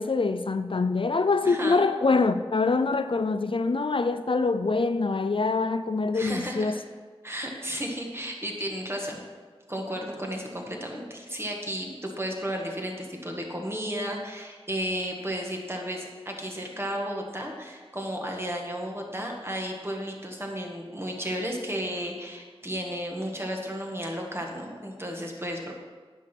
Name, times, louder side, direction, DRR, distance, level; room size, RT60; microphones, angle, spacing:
voice 1, 0.0-6.8, left 3 dB, 60° left, 0.4 m, -25 dB
voice 2, 1.4-1.9 6.1-6.8 7.2-9.2 9.7-25.7, equal, 25° right, 1.7 m, -33 dB
9.8 x 6.3 x 5.9 m
wide cardioid pair, 50°, 10 cm